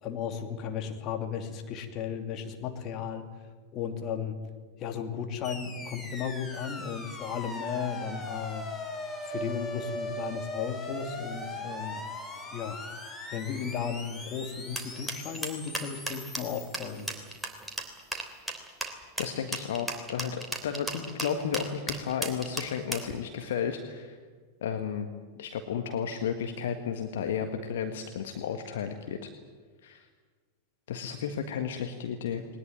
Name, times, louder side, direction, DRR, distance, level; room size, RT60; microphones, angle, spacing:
voice 1, 0.0-3.2 3.7-4.3 4.8-8.6 9.2-12.0 12.5-12.8 13.3-17.1, left 7 dB, 35° left, 5 dB, 2.8 m, -35 dB
sound 1, 5.4-17.7, left 1 dB, 15° left, 3.3 m, -40 dB
sound 2, 14.8-23.1, right 1 dB, 5° right, 3.3 m, -35 dB
voice 2, 19.2-24.2 24.6-25.1 25.4-29.2 29.8-30.1 30.9-32.4, left 7 dB, 60° left, 6 dB, 1.6 m, -33 dB
20.5 x 19.5 x 9.5 m, 1.5 s
figure-of-eight pair, 90°, 0 cm